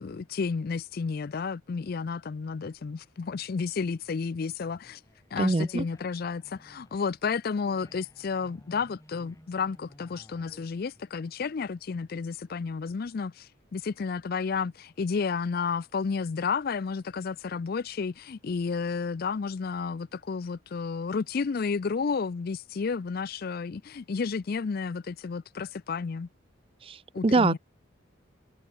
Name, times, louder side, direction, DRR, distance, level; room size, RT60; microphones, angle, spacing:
voice 1, 0.0-5.0 5.3-26.3 27.1-27.6, left 5 dB, 45° left, 0.4 m, -31 dB
sound 1, 3.6-12.4, equal, 15° left, 3.6 m, -57 dB
voice 2, 5.4-5.8 26.9-27.0 27.2-27.6, right 3 dB, 25° right, 0.4 m, -23 dB
head